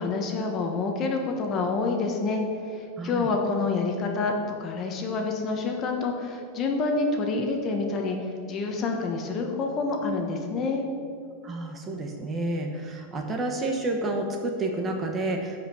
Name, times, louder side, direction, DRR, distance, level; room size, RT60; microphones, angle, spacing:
voice 1, 0.0-4.3 4.6-10.9, left 3 dB, 30° left, 2 dB, 1.3 m, -28 dB
voice 2, 3.0-3.3 11.4-15.6, right 2 dB, 20° right, 2 dB, 1.1 m, -30 dB
14.0 x 5.2 x 6.1 m, 2.3 s
supercardioid pair, 155°, 0 cm